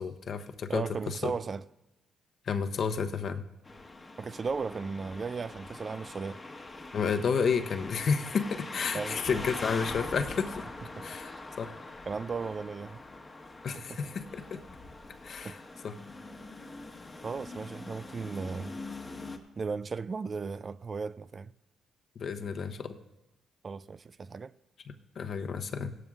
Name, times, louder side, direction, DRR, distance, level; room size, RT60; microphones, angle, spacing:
voice 1, 0.0-1.3 2.5-3.4 6.9-10.6 11.0-11.3 11.6-11.7 13.6-14.6 15.2-15.9 22.2-23.0 24.9-26.0, left 6 dB, 55° left, 0.8 m, -31 dB
voice 2, 0.7-1.6 4.2-6.4 8.9-9.2 11.0-11.1 12.1-13.0 13.7-14.0 15.4-15.6 17.2-18.8 19.6-21.5 23.6-24.5, right 5 dB, 35° right, 0.3 m, -36 dB
sound 1, 3.6-19.4, left 2 dB, 25° left, 1.2 m, -43 dB
17.0 x 12.5 x 2.4 m
cardioid pair, 90°, 0 cm